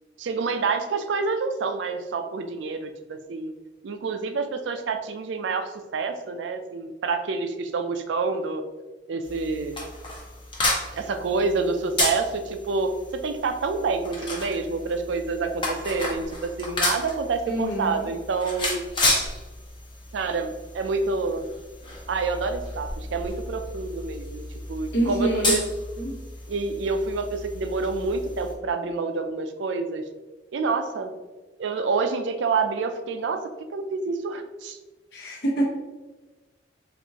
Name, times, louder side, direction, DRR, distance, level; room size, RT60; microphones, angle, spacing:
voice 1, 0.2-3.5 3.8-8.6 9.1-9.8 11.0-18.8 20.1-21.5 22.1-24.4 24.7-25.7 26.5-30.0 30.5-31.1 31.6-33.4 33.7-34.8, right 4 dB, 80° right, 7 dB, 0.4 m, -27 dB
sound 1, 9.2-28.5, left 2 dB, 25° left, 0.8 m, -32 dB
voice 2, 17.5-18.1 24.9-25.6 26.0-26.2 35.1-35.7, right 1 dB, 65° left, -3 dB, 1.1 m, -26 dB
4.4 x 2.5 x 2.8 m, 1.2 s
head